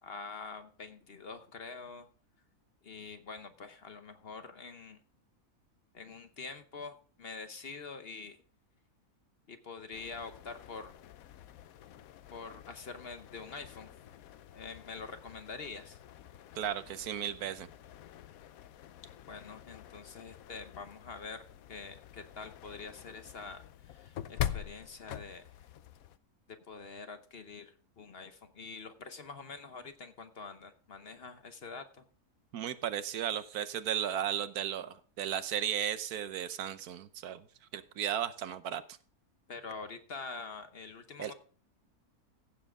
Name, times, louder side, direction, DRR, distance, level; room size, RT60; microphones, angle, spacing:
voice 1, 0.0-2.1 2.8-5.0 5.9-8.4 9.5-10.9 12.3-13.9 14.5-16.0 19.3-25.6 26.7-32.0 39.5-41.3, left 4 dB, 45° left, 8 dB, 1.0 m, -45 dB
sound 1, 9.9-26.2, left 11 dB, 75° left, 1.1 m, -45 dB
voice 2, 16.5-17.7 32.5-37.5 37.7-39.0 41.2-41.3, right 10 dB, 85° right, 13 dB, 1.3 m, -35 dB
15.5 x 7.4 x 3.6 m, 0.42 s
omnidirectional pair, 1.6 m